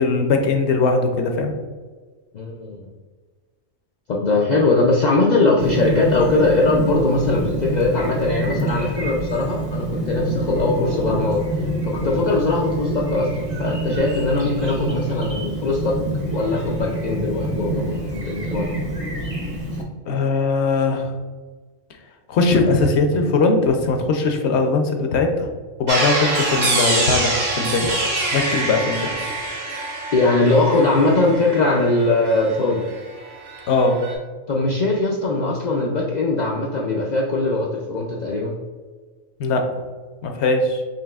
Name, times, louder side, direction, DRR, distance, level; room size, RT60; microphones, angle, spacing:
voice 1, 0.0-1.5 20.1-21.1 22.3-25.5 25.8-27.9 28.3-29.2 33.7-34.0 39.4-39.7 40.2-40.8, left 3 dB, 65° left, 4 dB, 0.8 m, -20 dB
voice 2, 2.3-2.9 4.1-16.0 16.3-18.8 30.1-32.8 34.5-38.5, left 2 dB, 85° left, -1 dB, 0.4 m, -20 dB
Chirp tweet, 5.6-19.8, right 1 dB, 35° right, 0.7 m, -26 dB
sound 1, 25.9-33.1 33.3-34.1, right 2 dB, 55° right, 1.1 m, -25 dB
5.4 x 2.8 x 2.3 m, 1.4 s
omnidirectional pair, 1.3 m